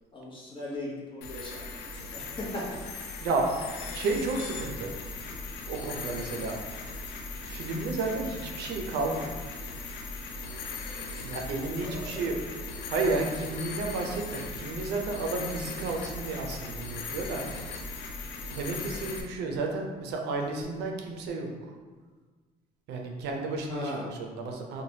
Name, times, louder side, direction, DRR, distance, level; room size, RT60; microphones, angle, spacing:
voice 1, 0.1-2.8 3.2-3.3 5.3-5.4 5.8-5.9 10.9-11.0 11.5-12.4 23.7-24.1, left 1 dB, 30° left, -4 dB, 0.8 m, -39 dB
sound 1, 1.2-19.2, left 3 dB, 80° left, 0.4 m, -38 dB
voice 2, 3.9-4.9 5.7-6.6 7.5-9.3 11.2-12.4 12.9-17.4 18.5-21.5 22.9-24.8, right 3 dB, 75° right, 2 dB, 0.5 m, -32 dB
3.2 x 2.2 x 2.7 m, 1.4 s
cardioid pair, 110°, 17 cm